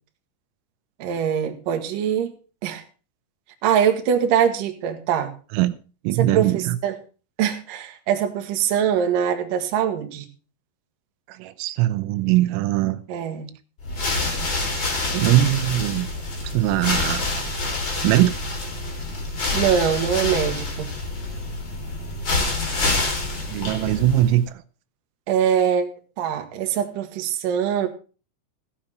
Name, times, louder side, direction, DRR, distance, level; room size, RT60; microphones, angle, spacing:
voice 1, 1.0-2.3 2.6-2.8 3.6-5.3 6.2-6.9 7.4-10.2 13.1-13.5 19.5-20.9 25.3-27.9, right 8 dB, 65° right, 2.3 m, -23 dB
voice 2, 6.0-6.8 11.3-13.0 14.1-14.2 15.1-16.1 16.4-17.2 18.0-18.4 23.5-24.4, right 14 dB, 85° right, 3.3 m, -21 dB
sound 1, 13.8-24.5, left 2 dB, 30° left, 2.3 m, -27 dB
15.5 x 7.2 x 5.8 m
omnidirectional pair, 6.0 m